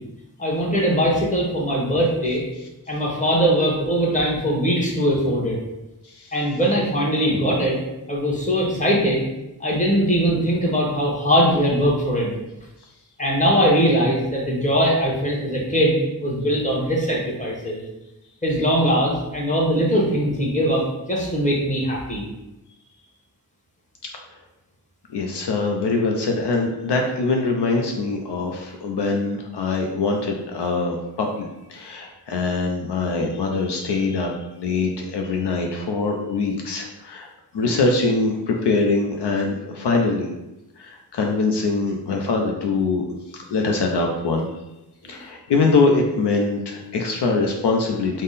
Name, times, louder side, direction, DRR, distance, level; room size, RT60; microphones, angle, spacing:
voice 1, 0.4-2.4 2.9-5.6 6.3-7.8 8.1-9.2 9.6-12.3 13.2-17.8 18.4-22.2 45.0-45.1, equal, 20° left, -3 dB, 1.1 m, -21 dB
voice 2, 6.0-6.3 24.0-24.1 25.1-37.3 37.5-40.3 40.8-44.5 45.0-48.2, left 3 dB, 75° left, 1 dB, 0.6 m, -23 dB
3.6 x 2.1 x 4.0 m, 0.96 s
cardioid pair, 55°, 41 cm